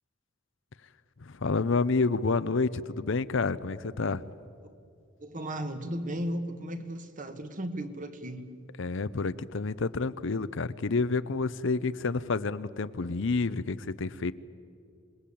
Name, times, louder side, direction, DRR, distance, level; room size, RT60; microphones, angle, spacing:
voice 1, 1.2-4.2 8.8-14.3, left 4 dB, 65° left, 0.7 m, -29 dB
voice 2, 5.2-8.6, equal, 40° right, 1.6 m, -35 dB
26.5 x 20.5 x 8.6 m
head